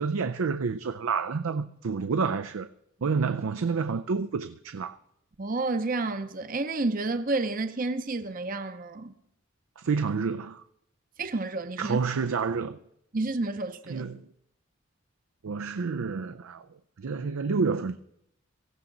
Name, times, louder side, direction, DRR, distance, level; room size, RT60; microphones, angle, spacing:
voice 1, 0.0-2.7 3.0-5.0 9.8-10.6 11.8-12.8 13.9-14.2 15.4-16.6 17.0-18.0, right 5 dB, 85° right, 0.5 m, -29 dB
voice 2, 5.4-9.1 11.2-12.0 13.1-14.1, right 3 dB, 40° right, 0.7 m, -30 dB
17.5 x 15.5 x 3.9 m
head